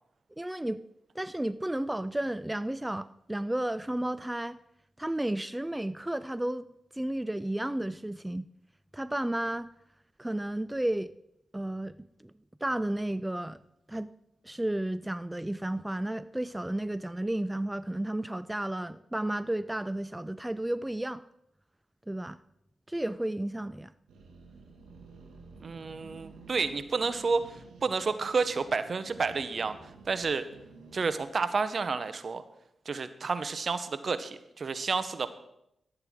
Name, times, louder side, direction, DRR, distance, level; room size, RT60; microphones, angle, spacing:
voice 1, 0.4-0.8 1.1-4.6 5.0-6.7 6.9-8.5 8.9-9.7 10.2-11.1 11.5-12.0 12.6-13.6 13.9-14.1 14.4-21.2 22.1-22.4 22.9-23.9, right 1 dB, 15° right, 0.4 m, -32 dB
sound 1, 24.1-31.3, right 4 dB, 90° right, 1.9 m, -52 dB
voice 2, 25.6-30.4 30.9-32.4 32.9-35.3, right 4 dB, 60° right, 0.8 m, -30 dB
14.0 x 8.0 x 3.7 m
supercardioid pair, 40°, 0 cm